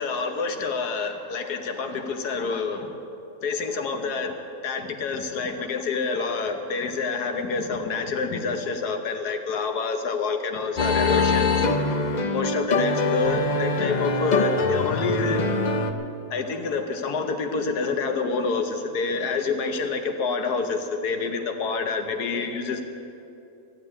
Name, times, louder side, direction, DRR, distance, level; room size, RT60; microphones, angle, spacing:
voice 1, 0.0-2.9 3.4-4.4 4.6-11.5 12.3-15.4 16.3-22.8, left 4 dB, 90° left, 6 dB, 1.6 m, -27 dB
sound 1, 10.8-15.9, left 3 dB, 45° left, 0.6 m, -23 dB
15.0 x 7.6 x 9.7 m, 2.7 s
omnidirectional pair, 1.6 m